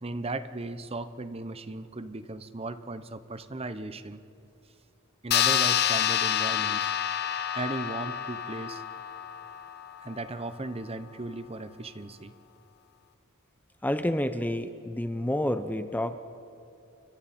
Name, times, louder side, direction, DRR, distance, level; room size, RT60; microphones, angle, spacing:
voice 1, 0.0-4.2 5.2-6.9 7.5-8.8 10.0-12.3, right 2 dB, 30° right, 12 dB, 0.9 m, -36 dB
sound 1, 5.3-10.2, left 10 dB, 50° left, 0.8 m, -28 dB
voice 2, 13.8-16.1, left 1 dB, 10° left, 10 dB, 0.6 m, -29 dB
29.5 x 24.0 x 4.3 m, 2.7 s
head